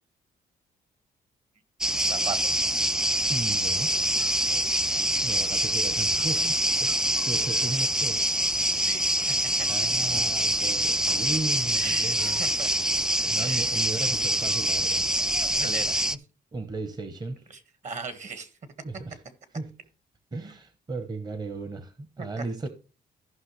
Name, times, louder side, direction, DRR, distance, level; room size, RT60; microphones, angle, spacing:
sound 1, 1.8-16.2, right 1 dB, 5° right, 0.3 m, -25 dB
voice 1, 2.0-2.5 8.7-9.9 11.7-12.7 13.4-13.7 14.1-14.2 15.3-16.2 17.5-18.5 22.2-22.4, right 4 dB, 50° right, 1.6 m, -38 dB
voice 2, 3.3-4.0 5.2-8.3 9.7-12.4 13.2-15.1 16.5-17.5 18.8-19.2 19.5-19.7 20.3-22.7, right 3 dB, 25° right, 0.9 m, -35 dB
14.5 x 5.7 x 3.2 m
cardioid pair, 105°, 16 cm